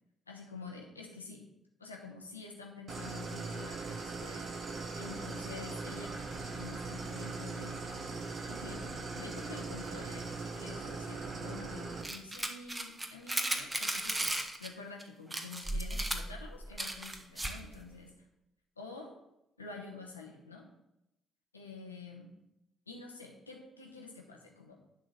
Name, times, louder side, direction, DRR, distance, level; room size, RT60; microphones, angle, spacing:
voice 1, 0.3-1.4 1.8-7.8 8.5-14.3 14.6-18.3 18.8-19.2 19.6-20.7 21.5-22.3 22.9-24.7, left 4 dB, 85° left, 0 dB, 0.9 m, -48 dB
Idling, 2.9-12.0, right 3 dB, 45° right, 1.4 m, -40 dB
sound 1, 12.0-14.7 15.0-15.1 15.3-17.7, right 1 dB, 20° right, 1.2 m, -35 dB
10.5 x 3.8 x 6.3 m, 0.85 s
figure-of-eight pair, 45°, 0 cm